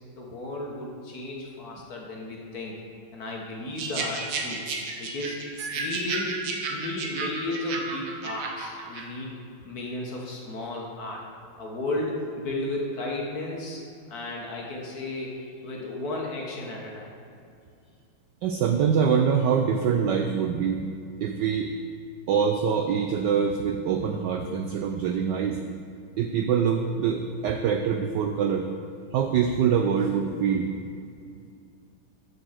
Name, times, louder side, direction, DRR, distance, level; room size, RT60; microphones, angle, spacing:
voice 1, 0.2-2.8 3.1-4.6 5.0-5.4 5.7-6.4 6.7-9.4 9.6-11.2 11.6-17.1, left 2 dB, 50° left, -1 dB, 1.5 m, -34 dB
sound 1, 3.8-9.0, right 3 dB, 60° right, 1.4 m, -33 dB
voice 2, 18.4-20.8 21.2-21.7 22.3-25.6 26.2-28.7 29.1-30.7, right 7 dB, 80° right, 5 dB, 0.9 m, -24 dB
6.9 x 6.8 x 6.3 m, 2.4 s
omnidirectional pair, 2.4 m